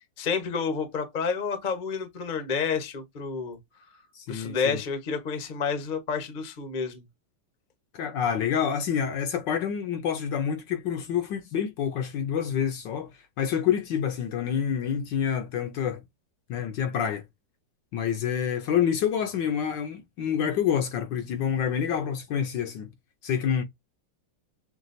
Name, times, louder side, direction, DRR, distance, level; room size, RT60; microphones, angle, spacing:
voice 1, 0.2-3.6 4.3-7.0, left 5 dB, 35° left, 0.7 m, -29 dB
voice 2, 4.1-4.8 7.9-13.1 13.4-16.0 16.5-17.2 17.9-22.9 23.2-23.6, left 8 dB, 70° left, 1.2 m, -27 dB
6.1 x 2.4 x 2.5 m
omnidirectional pair, 2.3 m